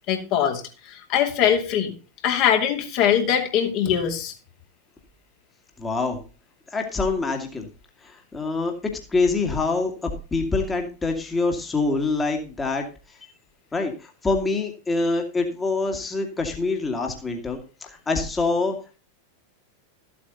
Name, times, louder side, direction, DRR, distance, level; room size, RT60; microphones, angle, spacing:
voice 1, 0.1-1.9 2.2-4.3, left 9 dB, 40° left, 3 dB, 2.6 m, -22 dB
voice 2, 5.8-6.2 6.7-7.7 8.0-12.9 13.7-19.0, left 3 dB, 15° left, 3 dB, 2.2 m, -25 dB
14.0 x 8.6 x 4.1 m, 0.33 s
figure-of-eight pair, 90°, 0 cm